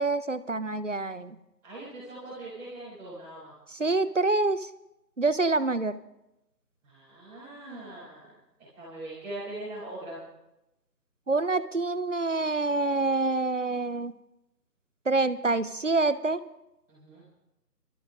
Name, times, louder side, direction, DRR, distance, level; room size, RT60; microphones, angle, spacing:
voice 1, 0.0-1.4 3.7-4.7 5.2-6.0 11.3-14.1 15.1-16.5, right 3 dB, 50° right, 14 dB, 0.5 m, -26 dB
voice 2, 1.6-3.5 6.8-8.3 8.8-10.2 16.9-17.2, right 1 dB, 5° right, -13 dB, 3.3 m, -41 dB
28.5 x 13.0 x 2.4 m, 0.90 s
figure-of-eight pair, 170°, 50 cm